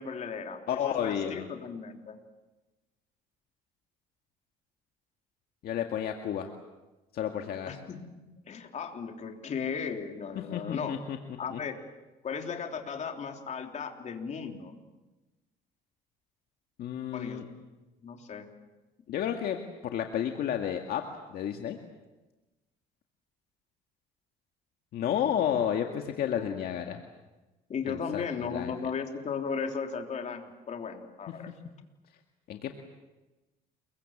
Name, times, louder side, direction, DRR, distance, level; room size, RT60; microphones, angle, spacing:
voice 1, 0.0-2.2 7.6-8.1 8.5-10.9 11.4-11.8 12.2-14.7 17.1-17.4 18.0-18.5 25.9-26.0 26.2-26.6 27.7-31.5, left 6 dB, 45° left, 4 dB, 3.4 m, -36 dB
voice 2, 0.7-1.5 5.6-6.5 7.1-7.8 10.5-11.2 11.5-11.6 16.8-17.4 19.1-21.0 21.3-21.8 24.9-27.0 27.9-28.7 32.5-32.7, left 9 dB, 65° left, 4 dB, 2.0 m, -31 dB
29.0 x 22.5 x 7.4 m, 1.1 s
cardioid pair, 110°, 17 cm